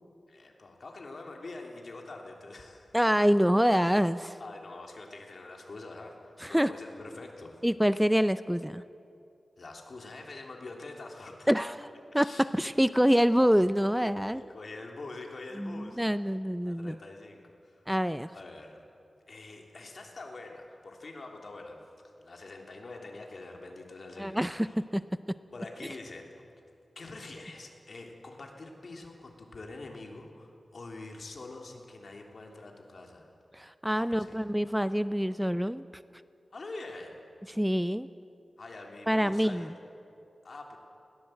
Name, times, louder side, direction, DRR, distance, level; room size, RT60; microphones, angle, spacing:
voice 1, 0.3-2.9 4.4-7.6 9.6-11.5 12.2-12.4 14.3-16.0 16.6-17.8 18.3-18.8 19.3-24.7 25.5-26.5 26.9-33.3 34.1-34.4 36.5-37.2 38.6-39.7 40.4-40.8, left 2 dB, 65° left, 2 dB, 3.1 m, -45 dB
voice 2, 2.9-4.4 6.4-6.7 7.6-8.8 11.5-11.7 12.1-14.4 15.6-16.9 17.9-18.3 24.2-25.0 33.5-35.8 37.5-38.1 39.1-39.7, equal, 5° right, 13 dB, 0.5 m, -26 dB
20.5 x 17.5 x 7.8 m, 2.6 s
wide cardioid pair, 65°, 0 cm